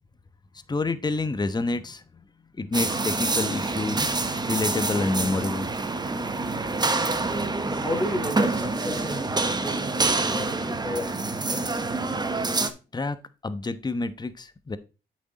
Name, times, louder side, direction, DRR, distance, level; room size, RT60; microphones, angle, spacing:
voice 1, 0.7-2.0 2.6-4.1 4.5-5.7 12.9-13.2 13.4-14.8, left 3 dB, 20° left, 12 dB, 1.0 m, -28 dB
sound 1, 2.7-12.7, right 3 dB, 20° right, 1.1 m, -27 dB
voice 2, 7.8-11.1 11.5-11.7, left 1 dB, 5° left, 0 dB, 3.7 m, -32 dB
8.2 x 6.5 x 4.0 m, 0.31 s
cardioid pair, 90°, 20 cm